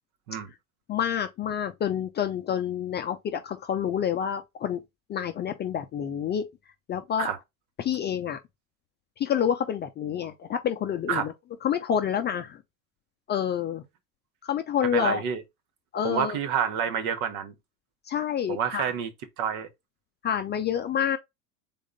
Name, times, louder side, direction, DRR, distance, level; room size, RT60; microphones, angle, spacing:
voice 1, 0.9-4.8 5.1-6.5 6.9-7.3 7.8-8.4 9.2-11.3 11.6-12.6 13.3-13.8 14.4-15.2 15.9-16.4 18.1-18.8 20.2-21.2, left 9 dB, 25° left, 0.4 m, -28 dB
voice 2, 14.9-15.4 16.0-17.5 18.5-19.1 19.4-19.7, right 8 dB, 65° right, 1.2 m, -28 dB
3.8 x 3.5 x 3.9 m
hypercardioid pair, 100°, 49 cm